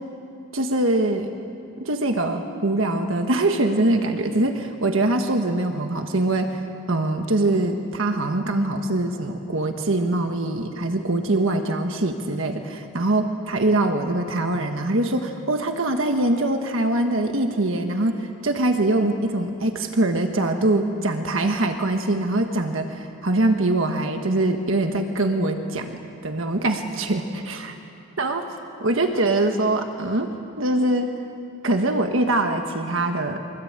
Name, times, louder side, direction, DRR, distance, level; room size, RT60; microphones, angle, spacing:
voice 1, 0.5-1.3 1.8-6.6 6.9-26.0 26.2-27.8 28.2-28.5 28.8-31.1 31.6-33.4, right 2 dB, 60° right, 5 dB, 1.5 m, -23 dB
24.0 x 21.0 x 8.9 m, 2.7 s
head